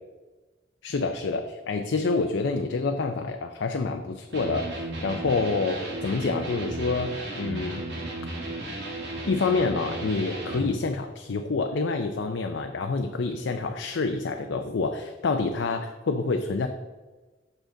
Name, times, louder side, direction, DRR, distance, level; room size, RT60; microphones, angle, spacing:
voice 1, 0.8-4.7 5.0-7.8 9.3-16.7, left 3 dB, 90° left, 5 dB, 0.5 m, -27 dB
Electric guitar, 4.3-10.7, right 2 dB, 70° right, 2.0 m, -34 dB
7.4 x 6.5 x 3.8 m, 1.2 s
head